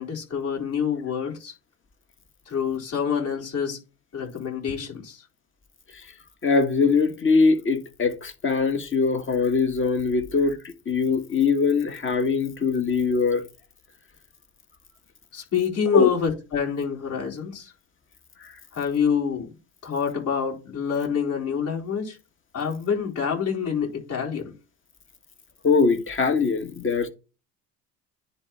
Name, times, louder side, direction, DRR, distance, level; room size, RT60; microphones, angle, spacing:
voice 1, 0.0-1.5 2.5-3.8 4.1-5.2 15.3-17.7 18.7-19.6 19.8-22.2 22.5-24.5, left 7 dB, 50° left, 4.4 m, -27 dB
voice 2, 6.4-13.4 15.9-16.1 25.6-27.1, left 4 dB, 30° left, 1.7 m, -22 dB
10.0 x 3.4 x 4.2 m
hypercardioid pair, 75°, 37 cm